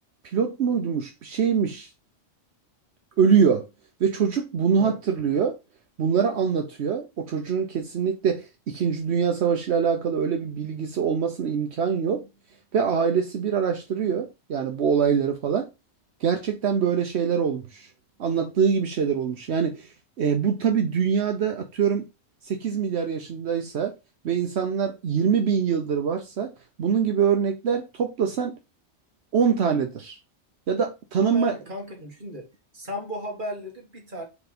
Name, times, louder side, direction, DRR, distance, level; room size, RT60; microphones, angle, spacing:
voice 1, 0.2-1.9 3.2-3.6 4.0-5.6 6.0-12.2 12.7-15.7 16.2-17.9 18.2-22.1 22.4-23.9 24.2-26.5 26.8-28.6 29.3-30.2 30.7-31.5, right 6 dB, 70° right, 1.0 m, -24 dB
voice 2, 31.2-32.5 32.7-34.2, equal, 45° right, 2.1 m, -35 dB
5.1 x 3.9 x 5.0 m
omnidirectional pair, 1.2 m